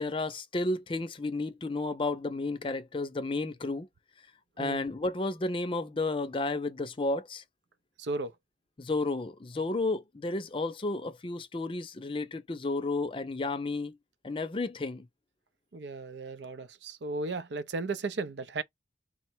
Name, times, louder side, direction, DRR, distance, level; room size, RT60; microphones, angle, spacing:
voice 1, 0.0-3.9 4.6-7.4 8.8-14.0 14.2-15.1, left 2 dB, 30° left, 0.5 m, -32 dB
voice 2, 15.7-18.6, right 3 dB, 80° right, 0.5 m, -35 dB
3.7 x 2.1 x 4.4 m
head